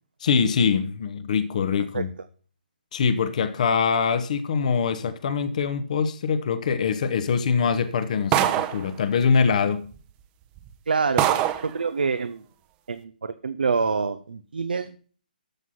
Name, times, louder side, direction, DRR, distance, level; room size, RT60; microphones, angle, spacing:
voice 1, 0.2-2.1 2.9-9.9, left 6 dB, 50° left, 1.1 m, -23 dB
sound 1, 8.3-8.9 9.9-10.0 10.6-10.7 11.2-11.7, right 12 dB, 20° right, 0.9 m, -22 dB
voice 2, 10.9-12.4 12.9-15.0, right 5 dB, 70° right, 0.9 m, -26 dB
13.5 x 6.2 x 5.8 m
figure-of-eight pair, 140°, 5 cm